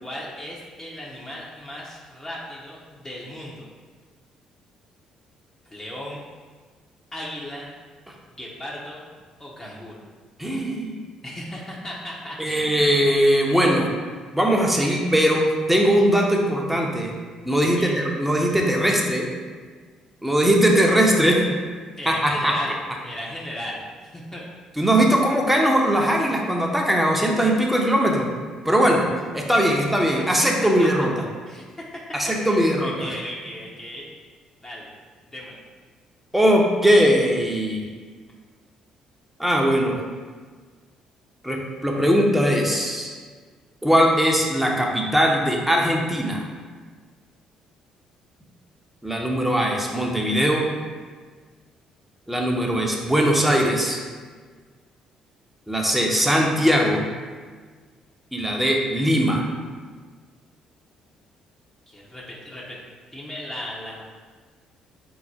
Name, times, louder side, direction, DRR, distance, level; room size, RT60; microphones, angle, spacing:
voice 1, 0.0-3.7 5.6-6.2 7.1-7.7 8.3-9.1 9.4-10.0 11.2-12.8 14.7-15.0 17.6-18.0 22.0-24.5 29.7-29.9 30.2-30.5 30.8-30.9 31.5-32.0 32.4-34.1 34.6-34.9 35.3-35.6 49.4-49.5 61.9-62.8 63.1-64.0, left 1 dB, 25° left, -5 dB, 0.8 m, -36 dB
voice 2, 10.4-11.0 12.4-13.9 14.3-17.1 17.4-19.3 20.2-21.4 22.1-22.5 24.8-28.3 28.6-29.1 29.3-31.1 32.1-32.9 36.3-37.9 39.4-40.0 41.4-43.2 43.8-46.4 49.0-50.7 52.3-54.0 55.7-57.1 58.3-59.5, equal, 5° right, 0 dB, 0.8 m, -20 dB
4.7 x 2.1 x 4.2 m, 1.5 s
hypercardioid pair, 55°, 2 cm